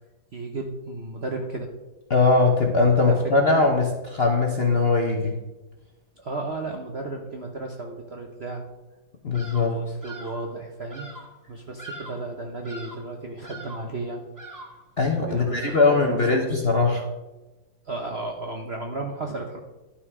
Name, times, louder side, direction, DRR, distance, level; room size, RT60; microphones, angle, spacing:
voice 1, 0.3-1.7 3.0-3.2 3.5-3.6 6.2-8.6 9.6-11.1 11.5-14.2 15.2-16.6 17.8-19.6, right 2 dB, 50° right, 2 dB, 0.8 m, -34 dB
voice 2, 2.1-5.3 9.2-9.8 15.0-17.1, left 3 dB, 45° left, 2 dB, 0.8 m, -21 dB
Bird vocalization bird call bird song, 9.3-9.8 10.0-10.5 10.9-11.3 11.8-12.3 12.6-13.1 13.4-13.9 14.4-14.9 15.5-16.1, right 2 dB, 10° right, 1.2 m, -42 dB
11.5 x 5.8 x 4.8 m, 1.1 s
omnidirectional pair, 2.1 m